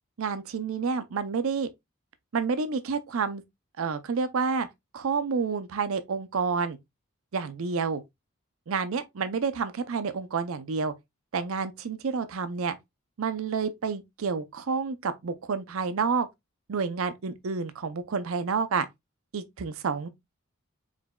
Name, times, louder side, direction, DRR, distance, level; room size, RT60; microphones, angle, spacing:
voice 1, 0.2-1.7 2.3-3.4 3.8-4.7 4.9-6.8 7.3-8.0 8.7-10.9 11.3-12.8 13.2-16.3 16.7-18.9 19.3-20.1, right 5 dB, 75° right, 0.5 m, -29 dB
4.9 x 3.9 x 2.2 m
head